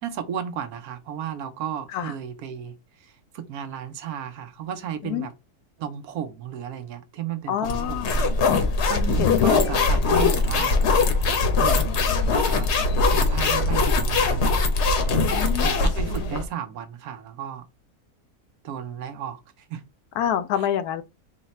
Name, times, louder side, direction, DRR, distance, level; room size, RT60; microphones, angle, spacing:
voice 1, 0.0-5.3 5.8-8.2 8.9-10.8 11.6-12.0 12.3-12.7 13.1-14.4 15.6-17.6 18.6-19.8, right 9 dB, 70° right, 1.2 m, -34 dB
voice 2, 7.5-8.1 9.2-9.9 10.6-10.7 15.2-15.9 20.2-21.0, left 10 dB, 75° left, 1.0 m, -27 dB
sound 1, 7.7-16.4, left 3 dB, 55° left, 0.9 m, -21 dB
4.0 x 2.2 x 4.0 m
omnidirectional pair, 1.7 m